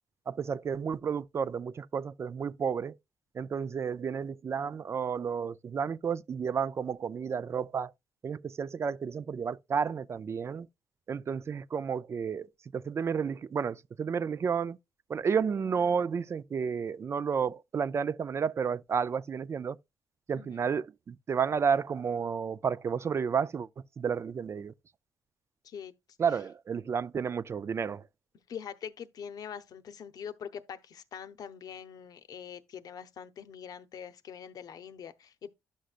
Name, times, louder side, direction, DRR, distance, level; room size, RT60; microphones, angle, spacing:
voice 1, 0.3-3.0 3.3-7.9 8.2-10.7 11.1-14.8 15.1-19.8 20.3-23.7 24.0-24.7 26.2-28.1, right 6 dB, 40° right, 0.4 m, -31 dB
voice 2, 28.5-35.5, left 7 dB, 60° left, 0.7 m, -43 dB
11.5 x 6.4 x 2.4 m
cardioid pair, 100°, 7 cm